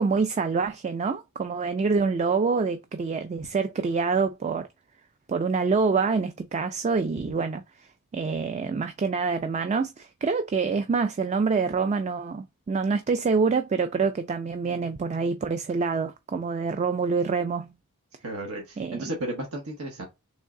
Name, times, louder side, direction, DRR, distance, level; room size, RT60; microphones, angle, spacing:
voice 1, 0.0-4.7 5.3-17.7 18.8-19.0, right 4 dB, 30° right, 0.3 m, -26 dB
voice 2, 18.2-20.0, right 1 dB, 70° right, 0.9 m, -33 dB
3.5 x 3.1 x 3.6 m
head